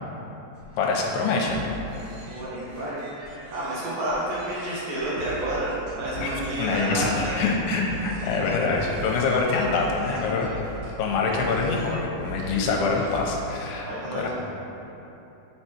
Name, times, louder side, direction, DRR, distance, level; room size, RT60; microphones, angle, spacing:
sound 1, 0.6-13.2, equal, 90° right, 3.5 m, -40 dB
voice 1, 0.8-1.6 6.2-6.3 6.6-10.5 11.0-14.3, left 4 dB, 85° left, -1 dB, 2.7 m, -25 dB
voice 2, 2.3-7.4 7.9-8.0 10.9-11.0 12.4-12.5 13.8-14.3, right 1 dB, 65° right, -8 dB, 2.6 m, -30 dB
8.4 x 4.5 x 4.3 m, 3.0 s
omnidirectional pair, 4.8 m